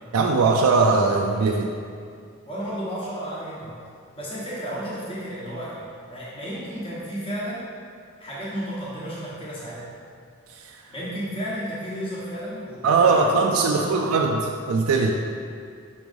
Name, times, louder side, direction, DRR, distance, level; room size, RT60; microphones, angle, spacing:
voice 1, 0.1-1.7 10.5-10.8 12.8-15.2, right 4 dB, 90° right, 1 dB, 0.4 m, -20 dB
voice 2, 2.4-3.8 4.1-7.6 8.2-9.9 10.9-13.3 13.7-14.1, equal, 25° left, -8 dB, 1.1 m, -33 dB
6.0 x 3.1 x 5.2 m, 2.3 s
head